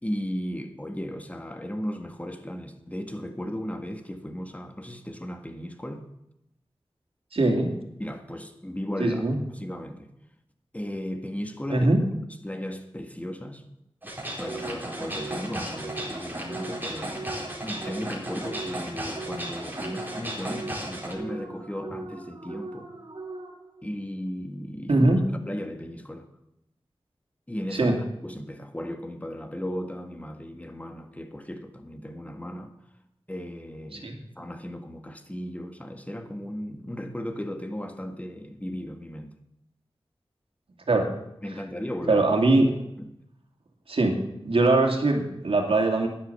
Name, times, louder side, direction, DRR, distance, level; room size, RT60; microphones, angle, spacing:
voice 1, 0.0-6.1 8.0-10.1 10.7-11.9 12.4-13.6 14.4-22.9 23.8-24.9 25.5-26.3 27.5-27.9 28.2-32.7 33.3-34.1 34.4-39.3 41.4-42.2 43.0-43.1, equal, 15° left, 1.7 m, -36 dB
voice 2, 7.3-7.7 9.0-9.4 11.7-12.0 24.9-25.2 27.7-28.0 33.9-34.2 40.9-41.1 42.1-42.7 43.9-44.2 44.4-46.1, right 2 dB, 75° right, 2.6 m, -21 dB
sound 1, 14.0-21.1, right 1 dB, 20° right, 4.4 m, -35 dB
sound 2, 14.5-23.8, right 3 dB, 50° right, 2.2 m, -40 dB
12.0 x 10.5 x 6.9 m
wide cardioid pair, 55°, 10 cm